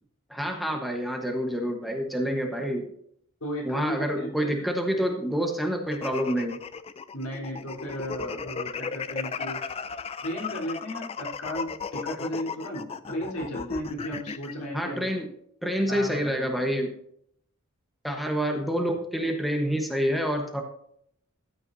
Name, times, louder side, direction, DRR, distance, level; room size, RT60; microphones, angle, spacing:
voice 1, 0.3-2.9 3.6-6.6 14.7-15.3 15.6-16.9 18.0-20.6, equal, ahead, 2 dB, 1.1 m, -27 dB
voice 2, 3.4-4.7 7.1-9.6 10.2-15.1 15.9-16.5, equal, 85° left, -2 dB, 3.8 m, -35 dB
sound 1, 5.9-14.5, left 5 dB, 25° left, 0.4 m, -35 dB
13.5 x 9.0 x 2.7 m, 0.70 s
head